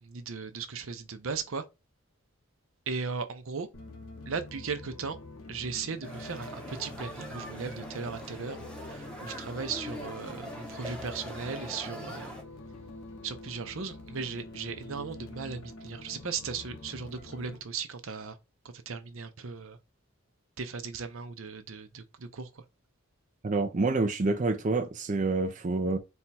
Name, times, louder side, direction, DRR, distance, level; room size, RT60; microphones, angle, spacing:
voice 1, 0.0-1.6 2.9-3.7 4.3-5.2 5.5-12.3 13.2-18.4 18.6-19.8 20.6-22.6, right 5 dB, 70° right, 0.7 m, -37 dB
sound 1, 3.7-17.6, left 2 dB, 85° left, 0.9 m, -46 dB
sound 2, 6.0-12.4, equal, 5° left, 0.8 m, -42 dB
voice 2, 23.4-26.0, right 3 dB, 35° right, 0.4 m, -27 dB
4.3 x 2.3 x 4.1 m
head